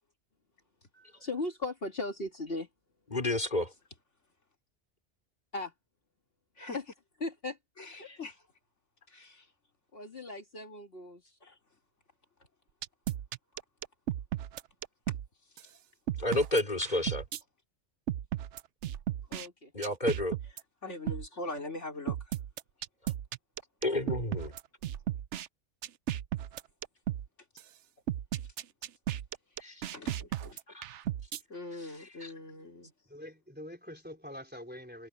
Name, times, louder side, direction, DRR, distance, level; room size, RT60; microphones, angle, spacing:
voice 1, 0.9-2.7 5.5-5.7 6.7-6.8 7.2-7.6 7.8-8.1 9.9-11.4 19.3-19.7, left 2 dB, 55° left, 2.9 m, -38 dB
voice 2, 3.1-3.7 8.1-8.2 16.2-17.2 19.7-20.4 23.8-24.5 29.6-29.8 30.7-30.8 32.2-32.3, left 1 dB, 40° left, 4.0 m, -30 dB
voice 3, 7.8-8.4 9.1-9.5 11.4-11.6 15.1-15.2 20.8-22.4 29.9-30.6 31.5-32.9, left 2 dB, 80° left, 3.6 m, -42 dB
sound 1, 12.8-15.3 15.6-15.7 16.1-17.4 18.1-19.5 19.8-20.6 21.1-21.3 22.1-25.5 25.8-27.3 27.6-27.7 28.1-31.4, right 11 dB, 75° right, 1.0 m, -35 dB
voice 4, 33.1-35.1, equal, 10° right, 3.7 m, -45 dB
omnidirectional pair, 1.2 m